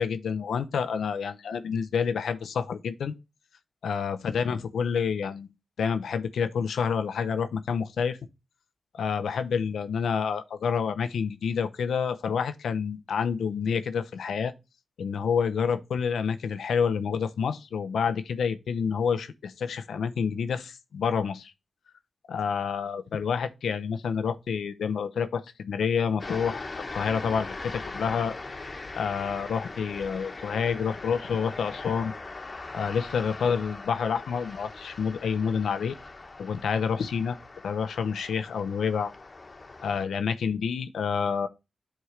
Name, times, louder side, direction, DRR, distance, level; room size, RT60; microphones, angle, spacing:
voice 1, 0.0-3.1 3.8-5.5 5.8-8.2 9.0-14.5 15.0-21.5 22.3-28.4 28.9-32.1 32.7-36.0 36.4-37.4 37.6-39.1 39.8-41.5, left 6 dB, 90° left, 0.6 m, -28 dB
sound 1, 26.2-40.0, left 3 dB, 50° left, 1.0 m, -41 dB
9.5 x 3.6 x 3.2 m
cardioid pair, 45°, 0 cm